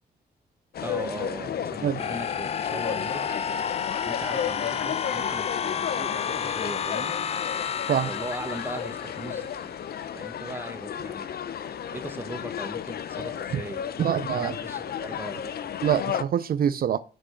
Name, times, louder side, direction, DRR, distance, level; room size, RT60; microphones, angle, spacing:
sound 1, 0.7-16.2, left 9 dB, 65° left, 0.8 m, -33 dB
voice 1, 0.8-3.3 4.0-7.1 8.0-9.8 10.1-11.3 11.9-13.8 14.3-15.7, right 2 dB, 10° right, 1.5 m, -39 dB
sound 2, 2.0-9.9, left 7 dB, 40° left, 0.4 m, -31 dB
voice 2, 14.0-14.5 15.8-17.0, right 9 dB, 60° right, 0.5 m, -25 dB
7.9 x 6.2 x 6.4 m
cardioid pair, 125°, 17 cm